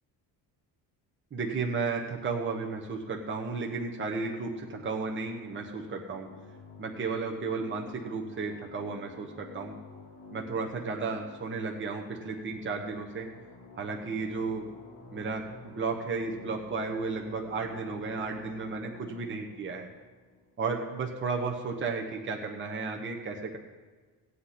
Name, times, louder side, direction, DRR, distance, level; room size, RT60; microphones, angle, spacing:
voice 1, 1.3-6.3 6.8-9.7 10.3-13.3 13.8-14.6 15.1-19.9 20.6-23.6, right 4 dB, 30° right, 1 dB, 1.1 m, -33 dB
sound 1, 3.0-21.1, left 3 dB, 45° left, 3.8 m, -51 dB
17.0 x 8.2 x 4.3 m, 1.4 s
cardioid pair, 135°, 40 cm